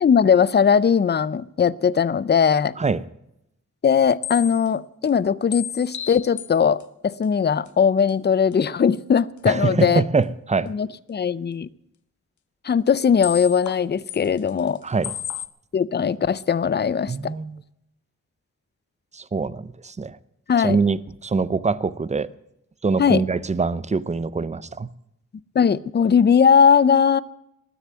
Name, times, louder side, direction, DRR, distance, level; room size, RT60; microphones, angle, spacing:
voice 1, 0.0-2.8 3.8-10.0 10.7-11.7 12.6-14.8 15.7-17.3 20.5-20.8 23.0-23.2 25.5-27.2, left 7 dB, 35° left, 0.5 m, -19 dB
sound 1, 4.2-4.7 5.1-5.2 5.5-6.5 6.8-6.9 7.2-7.3 7.7-7.8 8.1-8.2 8.5-8.6 8.9-9.0 13.2-13.8 14.1-14.8 15.0-15.5, left 9 dB, 80° left, 0.7 m, -33 dB
voice 2, 9.5-10.7 14.8-15.1 17.1-17.6 19.1-20.2 20.6-22.3 22.8-24.9, right 4 dB, 25° right, 0.5 m, -24 dB
19.5 x 6.9 x 9.2 m
wide cardioid pair, 130°, 30 cm